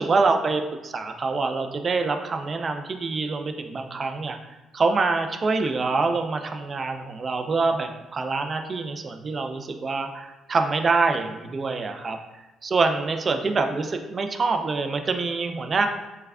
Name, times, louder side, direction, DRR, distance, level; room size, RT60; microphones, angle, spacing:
voice 1, 0.0-4.4 4.7-12.2 12.6-15.9, right 4 dB, 40° right, 6 dB, 0.3 m, -25 dB
3.4 x 3.2 x 2.3 m, 1.1 s
cardioid pair, 90°, 0 cm